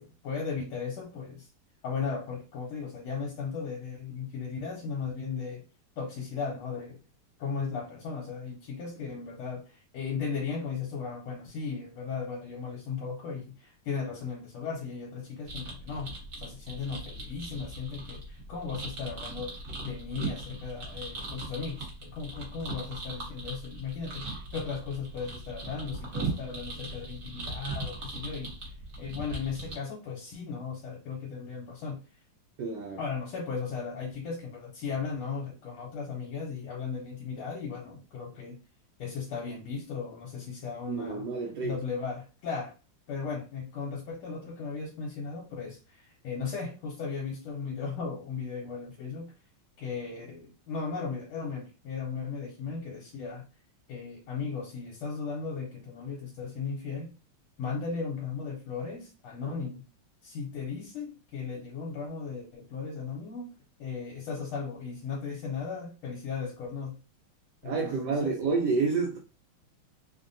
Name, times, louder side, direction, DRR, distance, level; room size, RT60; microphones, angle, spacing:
voice 1, 0.0-1.5 1.8-5.6 6.0-7.0 7.4-32.0 33.0-38.6 39.0-41.3 41.6-42.7 43.1-49.3 49.8-53.4 53.9-57.1 57.6-59.8 60.2-63.5 63.8-67.0 67.6-68.3, left 5 dB, 80° left, 1.5 m, -36 dB
sound 1, 15.5-29.7, right 2 dB, 50° right, 1.2 m, -39 dB
voice 2, 32.6-33.0 40.9-41.8 67.6-69.2, right 4 dB, 85° right, 0.9 m, -29 dB
3.5 x 2.1 x 2.5 m
omnidirectional pair, 2.4 m